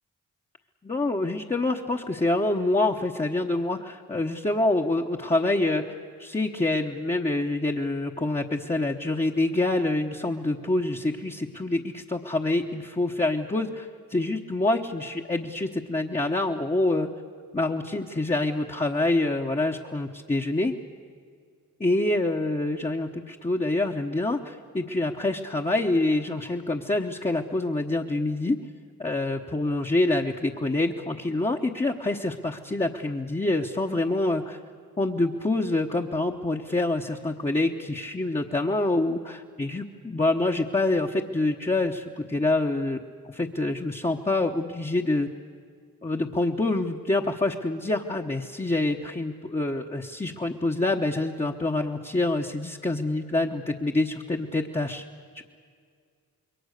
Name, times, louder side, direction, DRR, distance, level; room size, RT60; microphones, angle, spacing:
voice 1, 0.8-5.8 6.2-11.8 12.1-17.1 17.5-20.7 21.8-28.6 29.0-34.6 35.0-43.0 43.2-45.3 46.0-55.0 55.3-55.4, left 2 dB, 20° left, 0 dB, 1.1 m, -26 dB
27.0 x 22.0 x 6.7 m, 2.1 s
cardioid pair, 60°, 34 cm